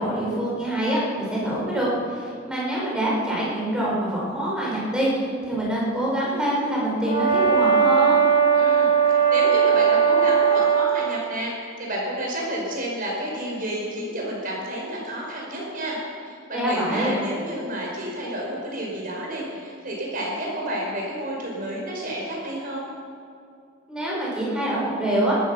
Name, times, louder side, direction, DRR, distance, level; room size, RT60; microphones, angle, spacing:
voice 1, 0.0-8.2 16.5-17.1 23.9-25.3, right 1 dB, 5° right, -6 dB, 5.1 m, -25 dB
Brass instrument, 7.0-10.9, right 7 dB, 40° left, 4.3 m, -18 dB
voice 2, 8.6-22.9, right 1 dB, 40° right, -2 dB, 5.3 m, -30 dB
18.5 x 13.5 x 5.9 m, 2.4 s
head